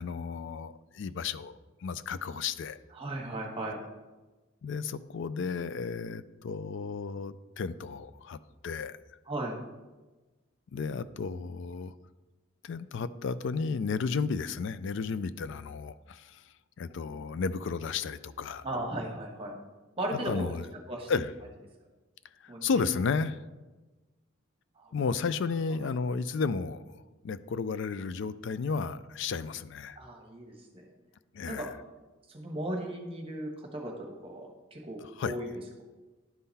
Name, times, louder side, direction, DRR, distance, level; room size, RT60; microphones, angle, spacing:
voice 1, 0.0-2.8 4.6-8.4 8.6-9.0 10.7-11.9 12.6-16.4 16.8-18.6 20.3-20.7 21.1-21.3 22.4-23.4 24.9-27.0 27.2-30.0 31.3-31.7 35.2-35.3, left 5 dB, 60° left, 15 dB, 0.3 m, -33 dB
voice 2, 2.9-3.8 9.3-9.6 18.6-19.6 20.0-20.5 20.9-21.1 22.5-22.7 24.8-24.9 25.8-25.9 29.9-30.9 31.5-31.7 32.3-35.6, right 1 dB, 25° right, 1 dB, 1.3 m, -36 dB
11.0 x 3.8 x 4.1 m, 1.2 s
head